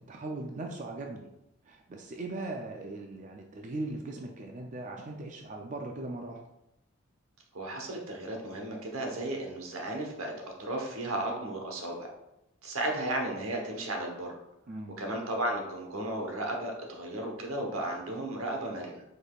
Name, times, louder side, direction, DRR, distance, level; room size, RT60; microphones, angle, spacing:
voice 1, 0.1-1.3 1.6-6.4 14.7-15.0, right 2 dB, 35° right, 1 dB, 0.4 m, -39 dB
voice 2, 7.5-10.3 10.6-12.1 12.6-14.3 15.0-19.0, right 1 dB, 85° right, 1 dB, 1.0 m, -34 dB
5.1 x 4.0 x 2.3 m, 0.87 s
head